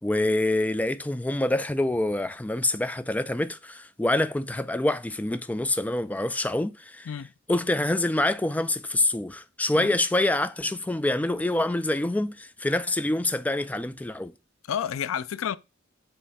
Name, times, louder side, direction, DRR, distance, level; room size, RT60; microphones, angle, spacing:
voice 1, 0.0-7.1 7.5-14.3, left 1 dB, 10° left, 0.3 m, -26 dB
voice 2, 14.7-15.6, left 8 dB, 80° left, 0.4 m, -30 dB
7.4 x 3.2 x 4.1 m
head